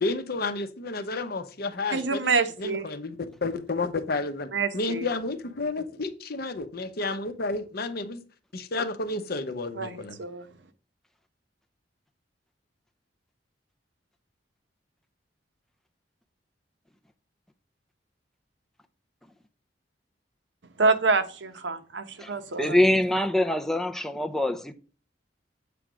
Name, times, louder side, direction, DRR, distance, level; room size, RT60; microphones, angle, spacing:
voice 1, 0.0-2.3 2.6-8.2 8.5-10.2, left 3 dB, 55° left, 0.8 m, -31 dB
voice 2, 1.9-2.9 4.5-5.1 9.8-10.4 20.8-22.8, right 4 dB, 75° right, 0.8 m, -26 dB
voice 3, 22.2-24.7, left 1 dB, ahead, 0.6 m, -24 dB
7.7 x 3.4 x 6.1 m
head